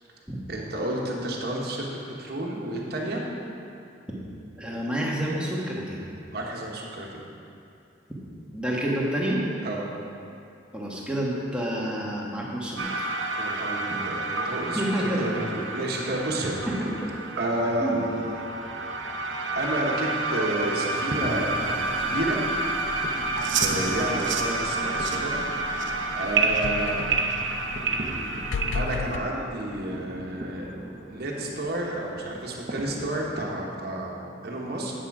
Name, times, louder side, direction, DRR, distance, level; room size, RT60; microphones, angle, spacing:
voice 1, 0.5-3.3 6.3-7.2 9.6-9.8 13.4-16.6 17.4-18.5 19.5-22.4 23.6-25.4 26.1-27.1 28.7-30.7 31.1-34.9, right 1 dB, 55° right, -2 dB, 1.3 m, -30 dB
voice 2, 4.6-6.0 8.5-9.4 10.7-12.9 14.7-15.2 17.8-18.0, right 1 dB, 5° right, -4 dB, 1.3 m, -28 dB
sound 1, 12.8-28.9, right 3 dB, 90° right, 0.8 m, -29 dB
sound 2, 15.9-33.3, right 1 dB, 40° right, 0.9 m, -41 dB
sound 3, 21.5-29.2, left 5 dB, 75° left, 0.3 m, -38 dB
9.6 x 7.5 x 4.8 m, 2.6 s
head